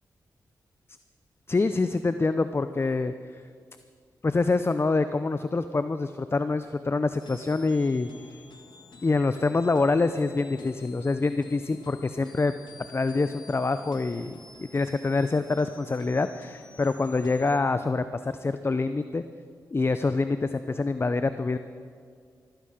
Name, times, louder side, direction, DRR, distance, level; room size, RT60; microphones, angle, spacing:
voice 1, 1.5-3.4 4.2-8.3 9.0-12.5 12.9-19.2 19.7-21.6, left 3 dB, 35° left, 11 dB, 0.5 m, -26 dB
sound 1, 7.2-17.6, left 3 dB, 85° left, 1.6 m, -50 dB
15.0 x 13.5 x 4.9 m, 2.1 s
cardioid pair, 55°, 8 cm